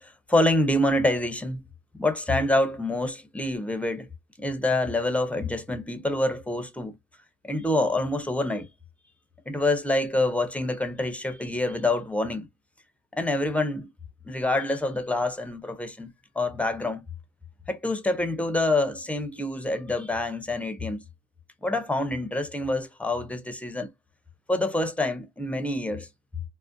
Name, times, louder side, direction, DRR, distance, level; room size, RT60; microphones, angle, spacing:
voice 1, 0.0-1.6 1.9-4.1 4.4-6.9 7.4-8.7 9.5-12.5 13.1-13.9 14.2-17.0 17.7-21.0 21.6-23.9 24.5-26.1, left 2 dB, 5° left, 0.5 m, -26 dB
2.4 x 2.1 x 2.5 m
cardioid pair, 90°, 30 cm